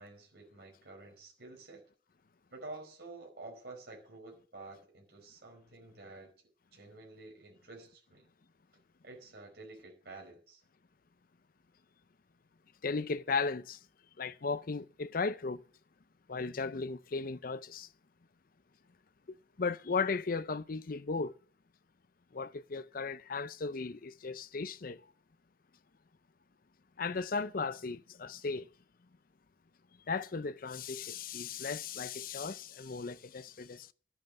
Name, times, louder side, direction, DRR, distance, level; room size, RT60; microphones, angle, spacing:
voice 1, 0.0-1.8 2.5-6.3 6.7-8.3 9.0-10.6, right 2 dB, 60° right, 4.8 m, -50 dB
voice 2, 12.8-13.8 14.2-15.6 16.3-17.9 19.3-21.4 22.3-25.1 27.0-28.7 30.1-33.9, left 4 dB, 50° left, 0.6 m, -36 dB
12.0 x 9.0 x 6.6 m
head